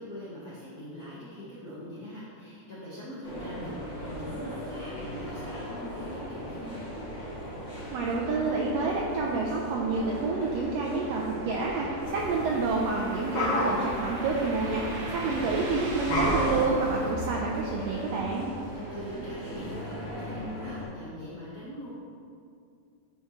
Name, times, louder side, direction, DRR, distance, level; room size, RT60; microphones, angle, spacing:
voice 1, 0.0-6.8 15.2-15.5 18.7-21.9, equal, 55° left, -10 dB, 1.0 m, -42 dB
sound 1, 3.2-20.8, equal, 20° left, 1.2 m, -37 dB
voice 2, 7.9-18.5, right 3 dB, 85° right, -1 dB, 1.4 m, -29 dB
sound 2, 9.5-16.7, right 2 dB, 65° right, 2.1 m, -43 dB
sound 3, 12.0-17.1, left 1 dB, 80° left, 3.0 m, -33 dB
9.9 x 4.7 x 3.1 m, 2.4 s
omnidirectional pair, 3.5 m